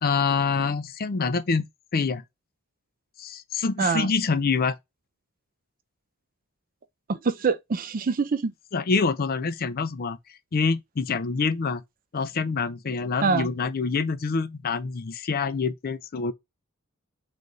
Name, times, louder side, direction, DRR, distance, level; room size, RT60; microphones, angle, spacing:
voice 1, 0.0-1.7 1.9-2.2 3.2-4.8 8.7-10.2 10.5-11.8 12.1-16.3, left 4 dB, 45° left, 0.5 m, -26 dB
voice 2, 3.8-4.1 7.1-8.5 13.2-13.5, right 5 dB, 40° right, 0.5 m, -25 dB
4.0 x 3.2 x 3.7 m
head